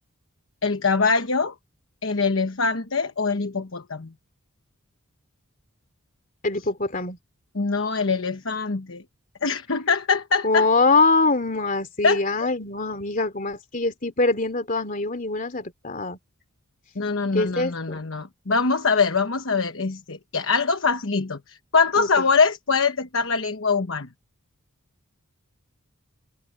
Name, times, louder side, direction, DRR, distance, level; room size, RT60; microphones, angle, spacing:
voice 1, 0.6-1.5 2.0-4.1 7.5-9.0 9.4-10.7 12.0-12.2 17.0-24.1, left 4 dB, 60° left, 1.1 m, -23 dB
voice 2, 6.4-7.2 10.4-16.2 17.3-18.0 22.0-22.2, left 3 dB, 40° left, 3.1 m, -23 dB
head